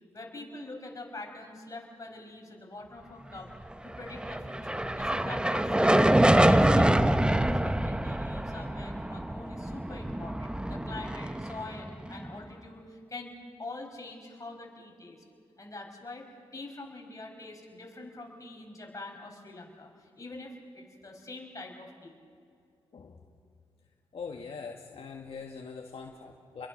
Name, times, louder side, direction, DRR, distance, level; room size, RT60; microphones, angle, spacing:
voice 1, 0.1-3.5 3.8-13.3 13.6-15.2 15.6-16.3 16.5-22.2, left 2 dB, 30° left, 0 dB, 5.3 m, -45 dB
sound 1, 3.9-12.3, right 1 dB, 10° right, 0.8 m, -25 dB
voice 2, 22.9-23.2 24.1-26.7, left 5 dB, 65° left, 1 dB, 1.8 m, -42 dB
30.0 x 22.5 x 6.5 m, 2.4 s
cardioid pair, 75°, 11 cm